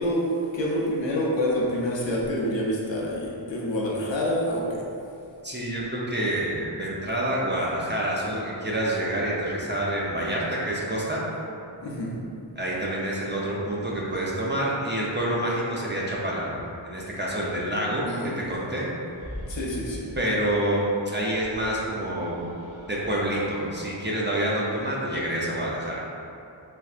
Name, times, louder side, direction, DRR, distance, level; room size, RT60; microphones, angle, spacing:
voice 1, 0.0-4.8 11.8-12.2 18.0-18.5 19.5-20.1, equal, 65° left, -4 dB, 0.7 m, -27 dB
voice 2, 5.4-11.2 12.6-16.5 16.8-18.1 18.4-18.9 20.2-22.4 22.9-26.0, right 1 dB, 25° right, -5 dB, 0.5 m, -27 dB
sound 1, 19.0-20.3 21.2-23.8, equal, 5° right, 0.9 m, -41 dB
4.1 x 2.2 x 2.4 m, 2.6 s
wide cardioid pair, 55°, 47 cm